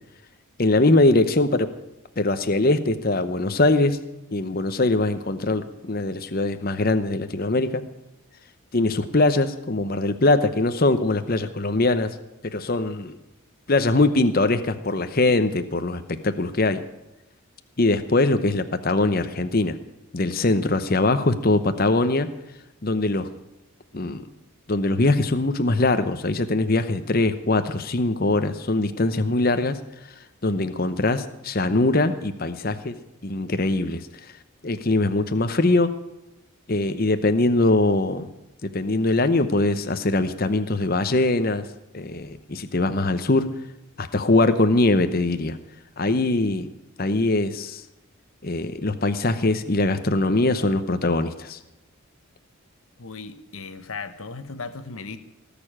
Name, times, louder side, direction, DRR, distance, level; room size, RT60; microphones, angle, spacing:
voice 1, 0.6-1.7 2.2-4.0 4.3-7.8 8.7-12.2 12.4-13.2 13.7-16.8 17.8-19.8 20.1-22.3 22.8-23.3 23.9-24.3 24.7-29.8 30.0-30.1 30.4-32.9 33.2-34.1 34.6-35.9 36.7-38.3 38.7-41.6 41.9-43.5 44.0-45.6 46.0-46.7 47.0-47.8 48.4-51.6, left 2 dB, 40° left, 9 dB, 0.8 m, -22 dB
voice 2, 53.0-55.2, left 4 dB, 70° left, 11 dB, 1.0 m, -36 dB
18.5 x 7.0 x 9.9 m, 0.95 s
head